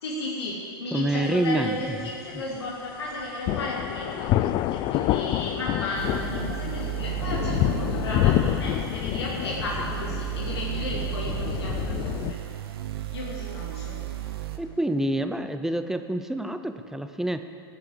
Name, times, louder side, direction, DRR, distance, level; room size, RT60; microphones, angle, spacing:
voice 1, 0.0-4.3 4.7-12.4 13.1-14.2, left 2 dB, 80° left, -4 dB, 2.6 m, -34 dB
voice 2, 0.9-1.8 14.6-17.4, right 1 dB, 5° right, 8 dB, 0.7 m, -27 dB
sound 1, 3.5-12.3, left 14 dB, 40° left, 0.5 m, -28 dB
sound 2, 5.9-14.6, right 15 dB, 70° right, 1.2 m, -33 dB
14.5 x 8.6 x 7.7 m, 2.3 s
hypercardioid pair, 110°, 13 cm